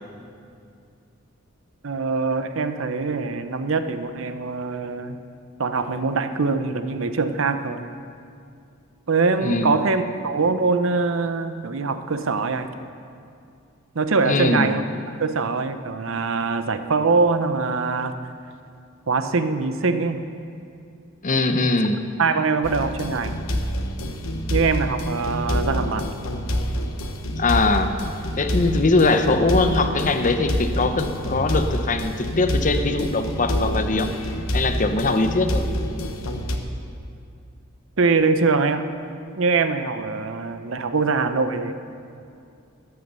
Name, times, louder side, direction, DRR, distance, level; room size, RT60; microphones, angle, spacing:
voice 1, 1.8-5.2 5.6-7.9 9.1-12.7 13.9-14.8 15.2-18.1 19.1-20.3 22.2-23.4 24.5-26.1 38.0-38.9 39.4-41.7, right 4 dB, 65° right, 10 dB, 0.7 m, -23 dB
voice 2, 9.4-9.8 14.2-14.7 21.2-22.0 27.4-27.9 28.4-34.1 34.5-35.6, left 3 dB, 40° left, 8 dB, 0.8 m, -21 dB
sound 1, 22.6-36.6, equal, 85° left, 1.1 m, -27 dB
13.5 x 9.3 x 6.8 m, 2.5 s
head